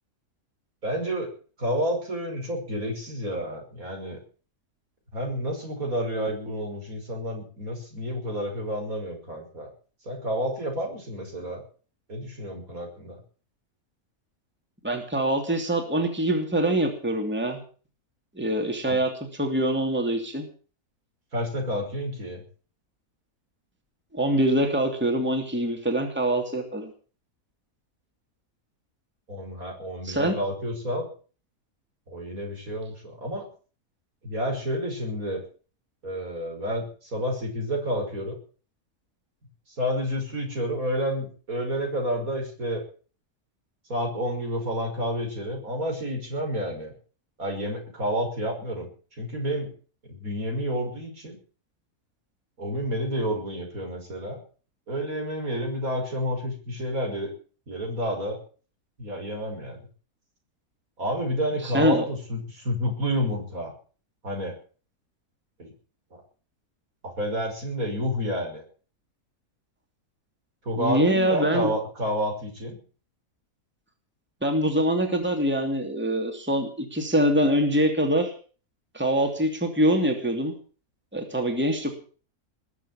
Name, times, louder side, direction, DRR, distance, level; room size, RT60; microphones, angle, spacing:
voice 1, 0.8-1.3 1.6-4.2 5.1-9.7 10.0-11.6 12.1-13.2 18.9-19.0 21.3-22.4 29.3-31.1 32.1-33.5 34.2-35.4 36.0-38.4 39.7-42.8 43.9-46.9 47.4-48.9 49.2-49.7 50.0-51.4 52.6-54.4 54.9-57.3 57.7-58.4 59.0-59.8 61.0-63.7 64.2-64.6 65.6-65.7 66.1-66.2 67.0-68.6 70.6-72.8, equal, 65° right, 2 dB, 6.1 m, -30 dB
voice 2, 14.8-17.6 18.3-19.1 19.4-20.5 24.1-26.9 30.0-30.3 61.7-62.1 70.8-71.7 74.4-78.3 78.9-80.5 81.1-81.9, right 1 dB, 5° right, 3 dB, 2.8 m, -24 dB
21.0 x 7.3 x 8.8 m, 0.41 s
omnidirectional pair, 1.6 m